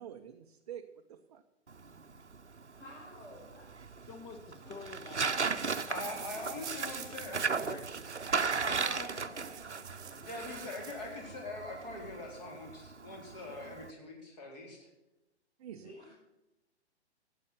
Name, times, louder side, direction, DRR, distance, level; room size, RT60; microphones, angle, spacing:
voice 1, 0.0-1.4 15.6-16.1, right 9 dB, 35° right, 4 dB, 0.7 m, -47 dB
Tearing, 1.7-13.9, right 5 dB, 80° right, 0.9 m, -37 dB
voice 2, 2.8-3.7 4.6-4.8 15.8-16.1, left 1 dB, 70° left, -5 dB, 5.8 m, -51 dB
voice 3, 4.0-6.0 6.3-10.4 11.0-11.4, left 4 dB, 15° left, 7 dB, 1.0 m, -52 dB
voice 4, 5.9-7.8 8.6-9.2 10.3-14.9, left 2 dB, 35° left, 0 dB, 4.2 m, -43 dB
sound 1, 6.1-11.4, right 8 dB, 10° right, 1.5 m, -49 dB
13.5 x 8.7 x 5.7 m, 0.99 s
figure-of-eight pair, 125°, 34 cm